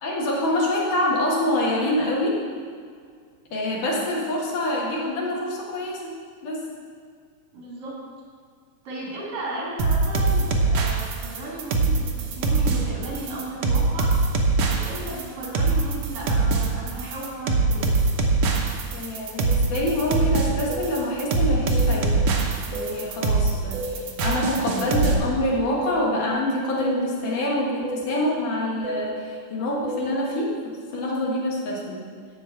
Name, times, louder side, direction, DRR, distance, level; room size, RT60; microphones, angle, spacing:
voice 1, 0.0-2.4 3.5-6.1 6.4-6.6 18.9-22.2 22.7-32.1, left 1 dB, 75° left, -3 dB, 3.1 m, -26 dB
voice 2, 7.5-7.9 8.8-14.1 14.7-17.9, right 1 dB, 85° right, -5 dB, 4.6 m, -34 dB
sound 1, 9.8-25.2, right 3 dB, 65° right, 1.7 m, -22 dB
sound 2, 19.7-19.9 20.7-20.9 21.7-21.9 22.7-22.9 23.7-23.9 24.8-25.0 25.8-26.0 26.8-27.0 27.8-28.0 28.8-29.0 29.8-30.1, right 2 dB, 5° right, 1.0 m, -32 dB
12.0 x 4.2 x 7.8 m, 2.1 s
omnidirectional pair, 3.8 m